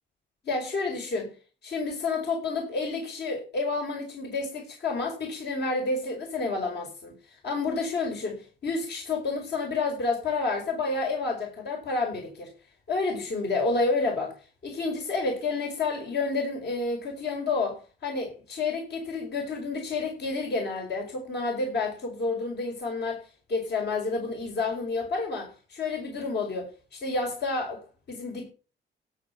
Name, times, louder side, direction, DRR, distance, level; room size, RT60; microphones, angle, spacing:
voice 1, 0.4-1.3 1.6-12.5 12.9-28.5, left 3 dB, 60° left, 4.8 m, -30 dB
17.0 x 8.0 x 5.8 m
cardioid pair, 90°, 20 cm